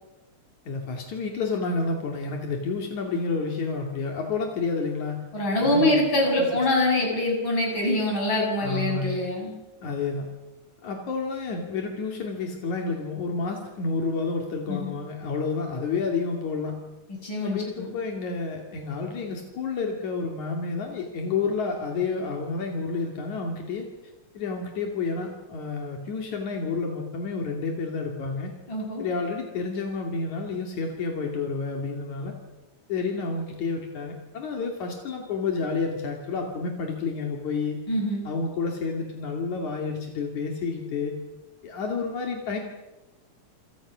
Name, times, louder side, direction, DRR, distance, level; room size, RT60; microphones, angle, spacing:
voice 1, 0.7-5.2 5.6-6.0 8.6-9.2 9.8-10.3 10.8-16.8 17.4-23.9 24.4-28.5 29.0-32.3 32.9-37.8 38.3-41.2 41.6-42.6, left 4 dB, 80° left, 2 dB, 4.0 m, -30 dB
voice 2, 5.3-9.5 14.7-15.0 17.2-17.9 28.7-29.0 37.9-38.2, left 1 dB, 40° left, 0 dB, 7.8 m, -24 dB
28.5 x 26.5 x 6.3 m, 1.0 s
omnidirectional pair, 3.3 m